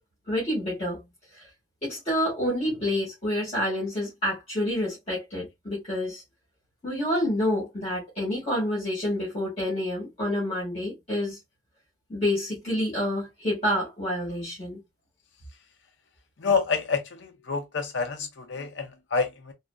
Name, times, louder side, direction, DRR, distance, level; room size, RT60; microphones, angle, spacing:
voice 1, 0.3-1.0 1.3-1.5 1.8-6.2 6.8-11.4 12.1-14.8, left 1 dB, 35° left, 1.9 m, -28 dB
voice 2, 16.4-19.5, left 5 dB, 90° left, 0.6 m, -28 dB
4.1 x 2.0 x 2.3 m
head